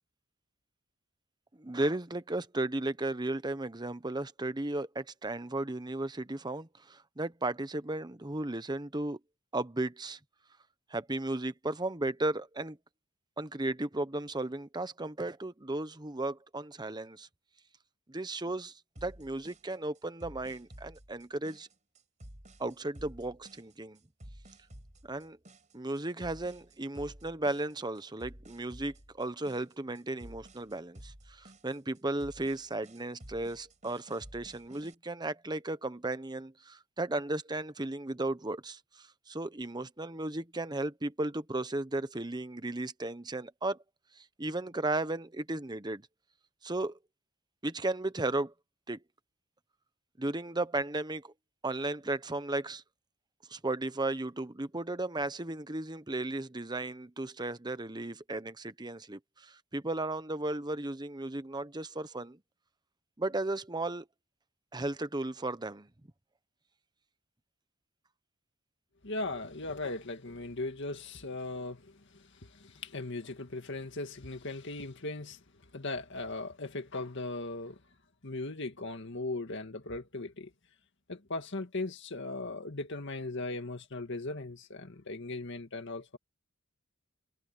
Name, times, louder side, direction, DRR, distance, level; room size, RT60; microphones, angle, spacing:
voice 1, 1.6-9.2 9.5-10.2 10.9-12.8 13.4-17.3 18.1-18.7 19.0-21.7 22.6-24.0 25.0-25.4 25.7-43.8 44.2-46.1 46.6-47.0 47.6-48.5 48.9-49.0 50.2-51.3 51.6-52.8 53.5-62.4 63.2-64.1 64.7-65.9, right 2 dB, 20° right, 1.0 m, -35 dB
sound 1, 19.0-35.0, equal, 35° right, 5.1 m, -52 dB
voice 2, 69.0-75.4 75.7-77.8 78.2-80.5 81.1-86.2, left 2 dB, 60° left, 2.1 m, -38 dB
head